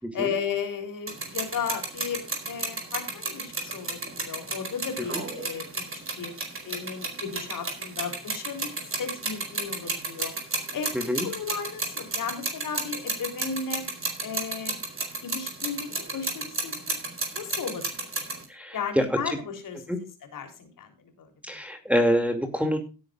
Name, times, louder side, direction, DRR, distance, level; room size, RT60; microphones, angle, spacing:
voice 1, 0.1-6.3 6.6-8.7 9.0-10.4 10.7-13.8 14.2-14.8 15.2-16.8 17.3-17.9 18.7-21.3, left 6 dB, 45° left, 5 dB, 3.6 m, -35 dB
sound 1, 1.1-18.5, right 3 dB, 30° right, 4.7 m, -33 dB
voice 2, 18.5-19.0 19.9-20.0 21.4-22.8, equal, 5° right, 4 dB, 2.5 m, -25 dB
17.0 x 10.0 x 2.5 m, 0.33 s
figure-of-eight pair, 55°, 46 cm